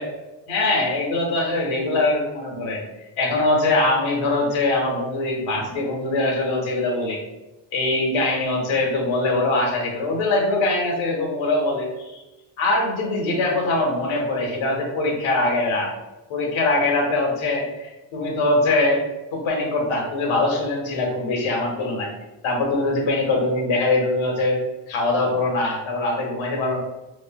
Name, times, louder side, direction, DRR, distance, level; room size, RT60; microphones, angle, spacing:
voice 1, 0.5-2.8 3.2-7.2 7.7-12.2 12.6-15.9 16.3-22.1 22.4-24.6 24.9-26.8, left 2 dB, 80° left, -1 dB, 1.2 m, -22 dB
4.7 x 3.0 x 2.2 m, 1.0 s
cardioid pair, 115°, 46 cm